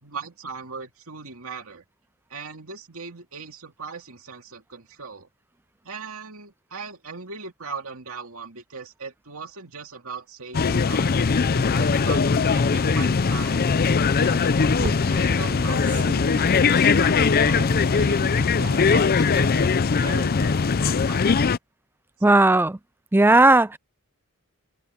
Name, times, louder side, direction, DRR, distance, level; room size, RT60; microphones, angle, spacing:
voice 1, 0.0-1.8 2.3-5.3 5.8-11.1 11.5-13.7 14.2-19.7 20.0-21.5 22.2-22.4, right 4 dB, 70° right, 2.7 m, -39 dB
sound 1, 10.5-21.6, left 5 dB, 45° left, 0.5 m, -20 dB
sound 2, 14.5-20.5, right 1 dB, 40° right, 5.8 m, -37 dB
voice 2, 22.2-22.8 23.1-23.8, right 2 dB, 10° right, 0.4 m, -16 dB
head